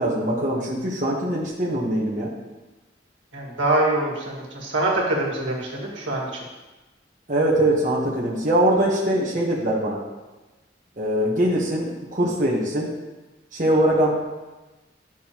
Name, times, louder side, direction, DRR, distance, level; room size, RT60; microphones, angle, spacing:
voice 1, 0.0-2.3 7.3-10.0 11.0-12.9 13.5-14.1, right 1 dB, 45° right, -4 dB, 1.1 m, -22 dB
voice 2, 3.3-6.3, right 2 dB, 90° right, -3 dB, 1.8 m, -24 dB
10.0 x 6.1 x 3.0 m, 1.1 s
head